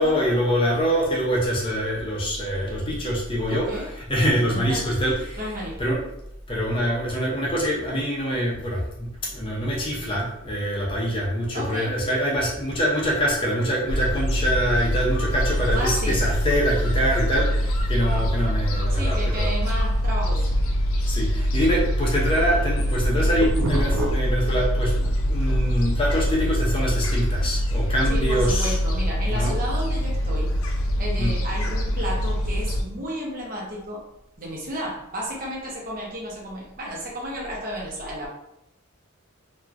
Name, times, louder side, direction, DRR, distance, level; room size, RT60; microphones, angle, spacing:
voice 1, 0.0-5.4 5.8-6.0 6.5-19.5 21.0-28.8 29.3-29.5 31.2-31.3, equal, 25° left, -3 dB, 0.6 m, -24 dB
voice 2, 3.5-3.9 4.5-5.9 11.5-12.0 15.7-16.2 18.9-20.5 28.1-30.5 31.0-34.0 34.4-38.3, equal, 40° right, -3 dB, 0.7 m, -32 dB
Gull seagull, 13.9-32.8, equal, 70° left, 0.4 m, -24 dB
sound 1, 22.8-25.1 25.5-27.9, right 1 dB, 75° right, 0.4 m, -30 dB
2.9 x 2.3 x 2.4 m, 0.84 s
head